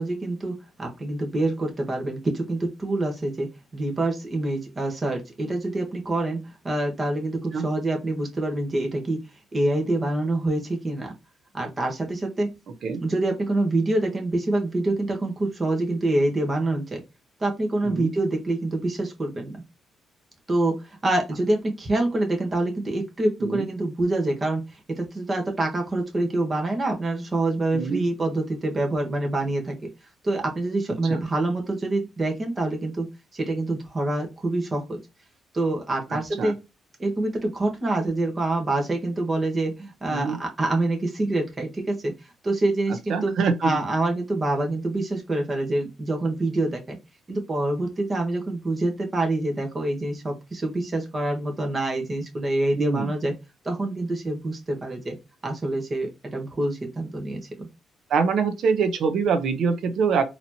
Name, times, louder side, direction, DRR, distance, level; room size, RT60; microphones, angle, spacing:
voice 1, 0.0-3.5 3.7-9.2 9.5-11.1 11.5-12.5 12.9-17.0 17.4-19.6 20.5-24.6 24.9-29.8 30.2-33.1 33.3-35.0 35.5-36.5 37.0-42.1 42.4-47.0 47.3-53.3 53.6-55.2 55.4-57.7, right 2 dB, 30° right, 1.4 m, -26 dB
voice 2, 43.1-43.8 52.7-53.1 58.1-60.2, right 5 dB, 70° right, 0.7 m, -24 dB
4.1 x 3.0 x 2.8 m
cardioid pair, 90°, 0 cm